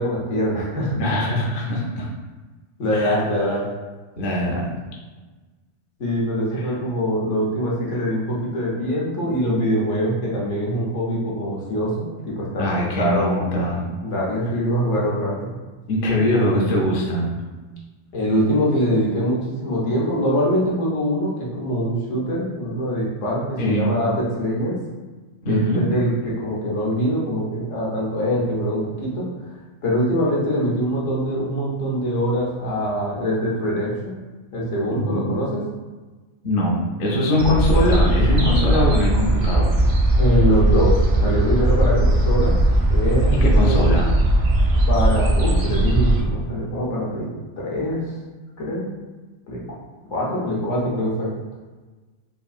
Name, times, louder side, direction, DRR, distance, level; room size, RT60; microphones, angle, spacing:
voice 1, 0.0-1.0 2.8-3.6 6.0-12.7 13.0-13.5 14.0-15.5 18.1-24.8 25.5-29.2 29.8-34.2 34.5-35.6 40.2-42.5 42.9-43.9 44.9-47.3 47.6-48.1 48.6-48.9 49.5-49.6 50.1-51.3, equal, 80° left, -5 dB, 1.2 m, -23 dB
voice 2, 1.0-2.1 2.9-3.2 4.2-4.7 6.6-6.7 12.6-13.9 15.9-17.3 23.6-24.0 25.4-25.9 34.9-35.3 36.4-39.8 43.3-44.1, left 1 dB, 55° left, -3 dB, 0.7 m, -22 dB
sound 1, 37.4-46.2, right 1 dB, 55° right, 0.5 m, -18 dB
3.6 x 2.5 x 2.3 m, 1.3 s
omnidirectional pair, 1.2 m